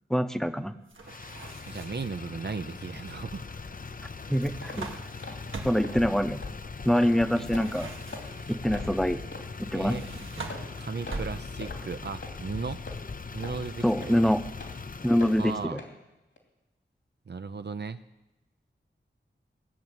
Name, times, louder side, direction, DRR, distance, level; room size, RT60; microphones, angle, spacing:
voice 1, 0.1-0.7 4.3-4.9 5.6-6.4 6.9-7.9 8.5-9.2 9.6-10.0 13.8-14.4 15.0-15.8, equal, ahead, 9 dB, 0.8 m, -25 dB
sound 1, 0.9-2.2 4.2-6.0 7.4-8.6 9.8-11.7, right 3 dB, 75° right, 1.6 m, -42 dB
Motor vehicle (road), 1.0-15.7, left 4 dB, 45° left, 0.6 m, -40 dB
voice 2, 1.6-3.7 7.4-7.5 9.7-10.0 10.8-12.9 13.3-14.2 15.4-15.8 17.3-18.0, right 5 dB, 60° right, 10 dB, 0.6 m, -36 dB
sound 2, 4.6-4.8 5.2-5.4 5.8-5.9 6.4-6.5 6.9-7.2 7.5-7.7 8.1-8.3 8.7-8.9 9.3-9.4 9.9-10.0 10.5-10.7 11.1-11.3 11.6-11.8 12.2-12.4 12.9-13.0 13.4-13.6 14.0-14.1 14.6-14.7 15.2-15.4 15.8-15.9 16.4-16.5, left 2 dB, 75° left, 2.9 m, -41 dB
19.0 x 7.0 x 9.2 m, 0.97 s
wide cardioid pair, 70°, 20 cm